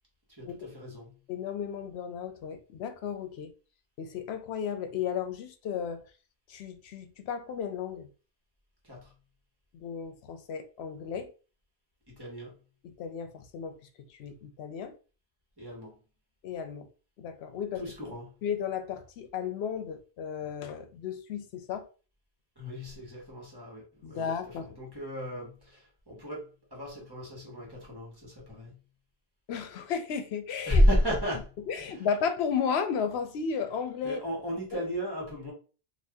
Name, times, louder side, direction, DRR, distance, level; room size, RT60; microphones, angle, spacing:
voice 1, 0.3-1.2 8.8-9.1 12.1-12.6 15.6-16.0 17.7-18.4 22.6-28.8 30.7-31.6 31.9-32.1 34.0-35.5, equal, 25° right, 1.2 m, -32 dB
voice 2, 1.3-3.5 4.0-6.0 6.5-8.1 9.7-11.3 12.8-13.7 14.1-14.9 16.4-16.9 17.2-17.8 18.4-21.8 24.0-24.7 29.5-30.8 31.7-34.2 34.7-34.8, left 7 dB, 85° left, 0.8 m, -34 dB
2.6 x 2.5 x 3.5 m
omnidirectional pair, 1.0 m